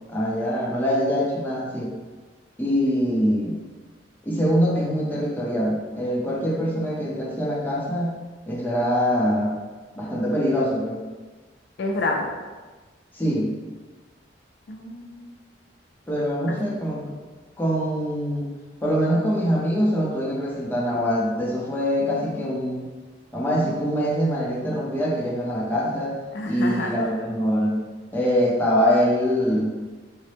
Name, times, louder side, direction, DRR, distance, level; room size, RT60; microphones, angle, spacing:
voice 1, 0.1-1.9 2.6-3.6 4.2-8.2 8.5-9.6 10.0-11.0 13.1-13.5 16.1-17.1 17.6-18.5 18.8-22.9 23.3-26.2 26.4-27.8 28.1-29.8, equal, 10° left, -5 dB, 0.7 m, -24 dB
voice 2, 11.8-12.3 14.7-15.3 16.5-16.6 26.3-27.1, left 2 dB, 65° left, 1 dB, 0.4 m, -28 dB
3.8 x 2.1 x 3.3 m, 1.3 s
head